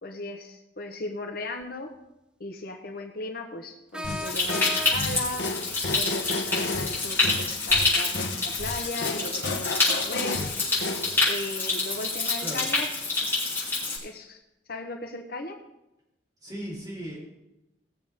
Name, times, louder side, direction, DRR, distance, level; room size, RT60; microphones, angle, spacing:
voice 1, 0.0-1.9 2.4-5.5 5.9-10.4 11.2-13.4 14.0-14.4 14.7-15.5, left 2 dB, 60° left, 4 dB, 1.1 m, -37 dB
sound 1, 1.6-1.7 3.9-5.4, left 1 dB, 5° right, 0.4 m, -36 dB
sound 2, 4.0-11.2, left 3 dB, 85° left, 1.1 m, -33 dB
Stream, 4.2-14.0, left 3 dB, 15° left, 3.6 m, -27 dB
voice 2, 16.4-17.2, equal, 20° right, -6 dB, 4.1 m, -36 dB
18.0 x 7.0 x 3.6 m, 0.92 s
head